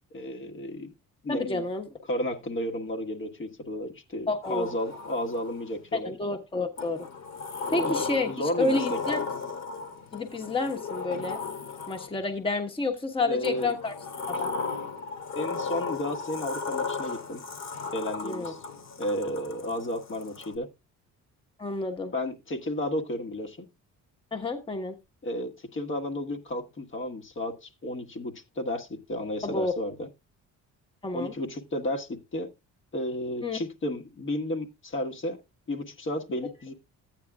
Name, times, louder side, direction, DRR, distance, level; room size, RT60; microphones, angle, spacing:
voice 1, 0.1-0.9 1.2-1.6 2.1-6.1 7.7-8.0 8.2-9.0 13.2-13.8 14.3-14.4 15.3-17.5 17.9-18.6 19.0-20.7 22.1-23.7 25.2-30.1 31.1-32.5 32.9-35.4 35.7-36.7, left 1 dB, 40° left, 1.5 m, -33 dB
voice 2, 1.3-1.9 4.3-4.7 5.9-7.0 7.7-8.3 8.6-9.2 10.1-11.4 11.9-13.9 14.4-14.5 18.2-18.5 21.6-22.1 24.3-25.0 29.4-29.7 31.0-31.3 33.4-33.6, left 3 dB, 15° left, 1.3 m, -29 dB
Sliding door, 4.4-5.8 6.8-12.3 13.4-20.5, left 4 dB, 55° left, 2.4 m, -35 dB
14.0 x 9.4 x 2.4 m
cardioid pair, 115°, 32 cm